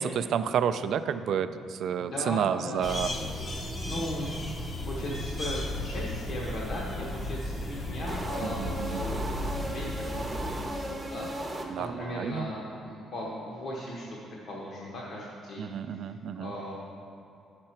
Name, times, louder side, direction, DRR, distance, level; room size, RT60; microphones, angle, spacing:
voice 1, 0.0-3.1 8.4-9.1 11.7-12.5 15.6-16.5, right 8 dB, 55° right, 11 dB, 0.3 m, -30 dB
voice 2, 2.0-3.0 3.8-4.4 4.6-16.1 16.3-16.7, left 1 dB, 50° left, -4 dB, 1.0 m, -38 dB
sound 1, 2.8-10.6, left 1 dB, 25° left, 0.7 m, -35 dB
sound 2, 8.1-12.1, right 1 dB, 10° right, 0.7 m, -36 dB
9.5 x 6.7 x 4.4 m, 2.7 s
cardioid pair, 165°, 0 cm